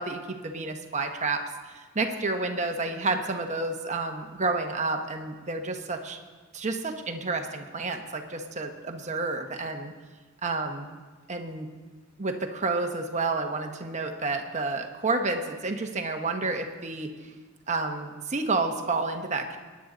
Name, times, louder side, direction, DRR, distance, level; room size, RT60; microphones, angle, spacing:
voice 1, 0.0-6.2 6.5-9.9 10.4-10.9 11.3-11.7 12.2-17.3 17.7-19.6, right 3 dB, 35° right, 4 dB, 1.1 m, -30 dB
22.0 x 9.6 x 3.9 m, 1.4 s
head